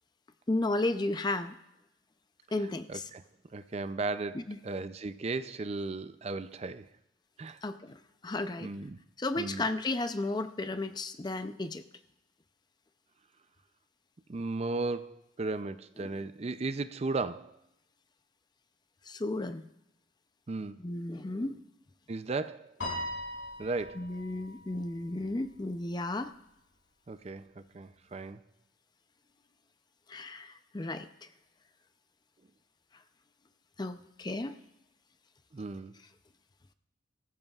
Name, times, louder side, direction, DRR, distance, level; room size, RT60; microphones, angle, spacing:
voice 1, 0.5-1.6 2.5-3.0 4.3-4.6 7.6-8.7 9.2-11.8 16.0-16.1 19.1-19.7 20.8-21.6 24.0-26.3 30.1-31.1 33.8-34.5, left 2 dB, 20° left, 0.5 m, -33 dB
voice 2, 2.9-3.2 3.5-6.9 7.4-7.6 8.6-9.0 9.4-9.7 14.3-17.6 20.5-20.8 22.1-22.7 23.6-24.1 27.1-28.4 35.5-35.9, right 3 dB, 30° right, 0.4 m, -35 dB
Piano, 22.8-25.3, left 1 dB, 65° left, 6.1 m, -39 dB
23.0 x 14.5 x 2.4 m
head